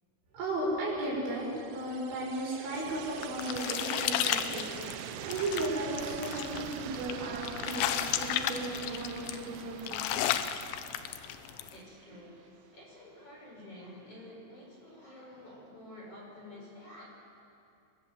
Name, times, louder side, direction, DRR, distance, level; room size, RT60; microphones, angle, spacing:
voice 1, 0.3-10.1, right 1 dB, 70° right, -3 dB, 8.4 m, -35 dB
sound 1, 1.4-12.5, right 12 dB, 90° right, 2.2 m, -44 dB
sound 2, 2.8-11.7, left 11 dB, 80° left, 3.1 m, -34 dB
voice 2, 11.4-17.0, left 1 dB, 30° left, -3 dB, 6.9 m, -50 dB
27.0 x 22.5 x 7.8 m, 2.5 s
omnidirectional pair, 5.4 m